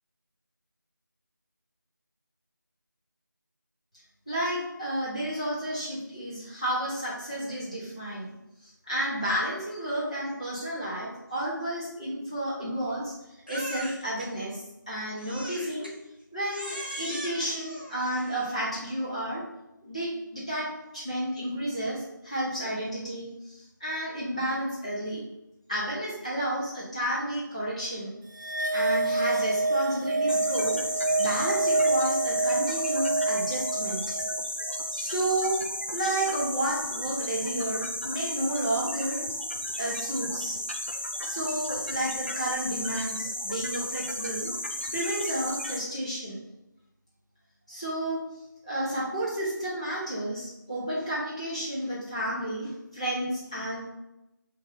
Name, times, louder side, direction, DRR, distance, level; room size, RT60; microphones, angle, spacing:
voice 1, 4.3-8.3 8.9-13.1 13.5-15.9 16.3-19.4 19.8-25.2 25.7-28.1 28.7-30.8 31.2-34.2 34.9-35.6 35.9-39.3 39.8-40.6 41.2-44.5 44.9-46.4 47.7-48.2 48.6-53.9, right 1 dB, 20° left, -8 dB, 0.7 m, -31 dB
Crying sobbing, 13.5-14.3 15.2-16.0 16.5-18.6, right 1 dB, 30° right, 0.5 m, -39 dB
sound 1, 28.3-34.9, right 2 dB, 65° right, 0.7 m, -27 dB
sound 2, 30.3-45.8, left 1 dB, 35° left, 0.4 m, -34 dB
7.0 x 2.6 x 2.6 m, 0.92 s
figure-of-eight pair, 175°, 11 cm